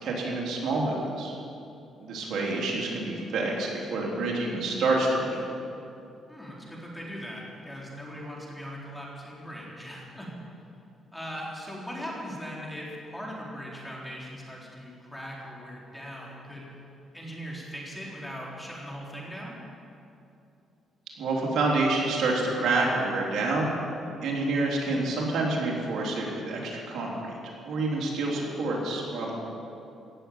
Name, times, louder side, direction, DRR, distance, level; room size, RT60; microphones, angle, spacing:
voice 1, 0.0-1.3 2.0-5.4 21.2-23.7 24.2-27.3 27.6-29.4, right 2 dB, 70° right, -2 dB, 3.6 m, -28 dB
voice 2, 6.3-10.3 11.1-16.8 17.1-19.6, equal, 5° left, -4 dB, 4.1 m, -39 dB
17.0 x 7.5 x 8.7 m, 2.7 s
cardioid pair, 90°, 0 cm